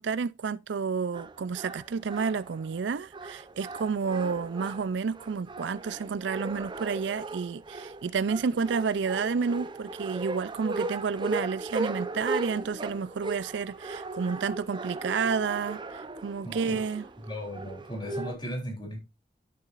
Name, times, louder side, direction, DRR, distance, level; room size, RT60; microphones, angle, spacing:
voice 1, 0.0-17.0, right 5 dB, 75° right, 0.4 m, -30 dB
sound 1, 1.1-18.3, right 2 dB, 25° right, 0.7 m, -38 dB
voice 2, 16.4-16.8 17.3-19.0, equal, 25° left, 3.3 m, -36 dB
12.0 x 6.8 x 2.5 m
head